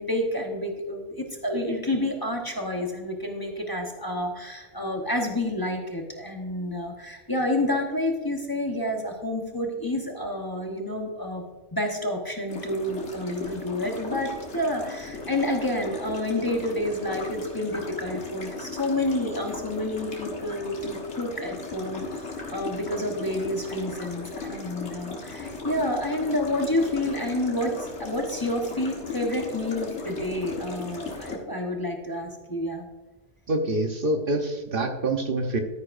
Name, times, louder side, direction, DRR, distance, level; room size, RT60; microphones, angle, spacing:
voice 1, 0.0-11.4 11.7-32.9, left 1 dB, 20° left, 2 dB, 1.1 m, -29 dB
sound 1, 12.5-31.4, left 3 dB, 85° left, 1.8 m, -37 dB
voice 2, 33.5-35.6, right 2 dB, 55° right, 4 dB, 1.1 m, -26 dB
13.0 x 9.7 x 2.6 m, 1.2 s
omnidirectional pair, 1.1 m